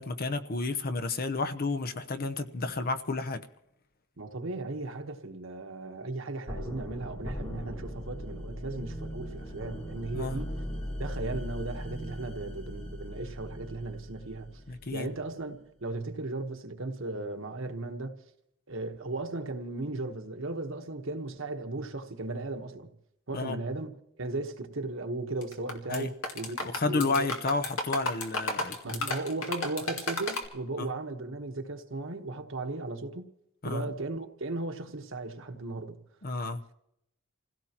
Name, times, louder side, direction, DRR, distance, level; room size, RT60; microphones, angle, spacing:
voice 1, 0.0-3.4 10.1-10.4 14.7-15.1 23.3-23.6 25.9-26.1 26.7-29.0 30.8-30.9 33.6-33.9 36.2-36.6, left 3 dB, 45° left, 0.8 m, -31 dB
voice 2, 4.2-10.5 11.0-14.5 14.9-18.2 18.7-22.9 23.3-27.3 28.8-33.3 33.6-36.0, right 2 dB, 65° right, 1.3 m, -36 dB
sound 1, 6.5-15.3, equal, 30° left, 1.8 m, -39 dB
sound 2, 25.4-26.0 26.2-30.5, left 2 dB, 80° left, 2.3 m, -32 dB
28.0 x 16.5 x 3.0 m
head